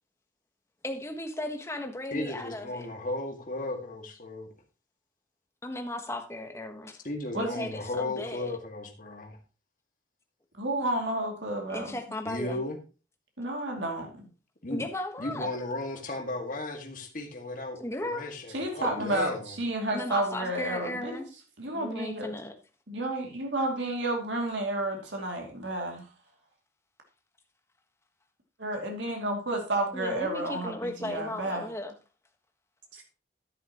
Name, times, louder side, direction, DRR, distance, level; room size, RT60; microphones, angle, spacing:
voice 1, 0.8-2.9 5.6-7.0 7.3-8.6 11.7-12.6 14.7-15.5 17.8-18.3 18.9-19.1 19.9-21.3 21.7-22.5 29.9-31.9, left 1 dB, 15° left, 1.3 m, -36 dB
voice 2, 2.1-4.5 7.0-9.4 12.3-12.8 14.6-14.8 15.2-19.5, left 2 dB, 45° left, 1.9 m, -35 dB
voice 3, 7.3-7.7 10.6-11.9 13.4-14.2 18.5-21.2 21.6-22.3 22.9-26.1 28.6-31.7 32.9-33.0, right 1 dB, 80° right, 2.6 m, -31 dB
11.0 x 9.9 x 3.0 m
head